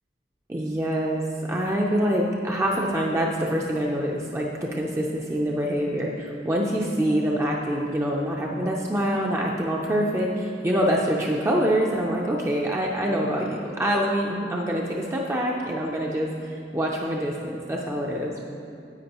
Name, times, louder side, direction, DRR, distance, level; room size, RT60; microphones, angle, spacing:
voice 1, 0.5-1.2 1.5-18.4, equal, 15° right, -2 dB, 0.5 m, -25 dB
10.5 x 8.0 x 2.9 m, 2.5 s
head